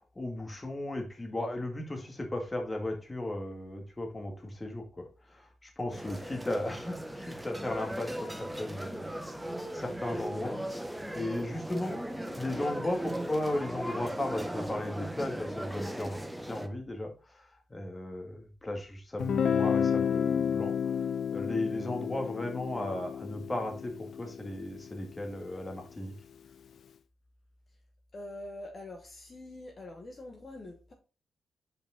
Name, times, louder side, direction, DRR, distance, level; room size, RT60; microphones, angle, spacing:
voice 1, 0.2-20.7 21.3-26.1, left 1 dB, 20° left, 1.7 m, -36 dB
sound 1, 5.9-16.7, right 1 dB, 5° right, 0.8 m, -38 dB
Guitar, 19.2-25.0, left 7 dB, 70° left, 0.4 m, -31 dB
voice 2, 28.1-30.9, left 1 dB, 40° left, 1.5 m, -45 dB
5.2 x 5.1 x 3.9 m
cardioid pair, 80°, 0 cm